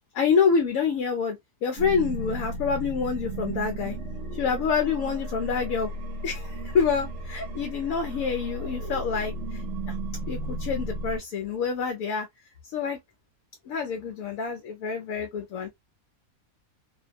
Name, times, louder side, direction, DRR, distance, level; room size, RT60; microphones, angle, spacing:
voice 1, 0.1-1.4 1.6-4.0 4.4-5.9 6.2-9.6 9.9-10.0 10.3-12.3 12.7-13.0 13.7-15.7, left 6 dB, 70° left, 0.9 m, -27 dB
sound 1, 1.8-11.2, right 1 dB, 60° right, 1.0 m, -34 dB
2.8 x 2.0 x 2.4 m
omnidirectional pair, 1.6 m